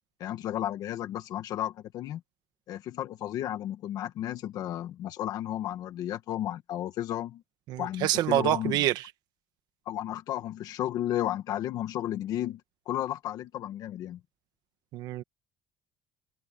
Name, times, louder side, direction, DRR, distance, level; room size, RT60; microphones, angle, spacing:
voice 1, 0.2-2.2 2.7-7.4 7.8-8.8 9.8-12.6 12.9-14.2, left 12 dB, 50° left, 1.4 m, -33 dB
voice 2, 7.7-9.0 14.9-15.2, right 14 dB, 55° right, 1.4 m, -26 dB
cardioid pair, 170°, 8 cm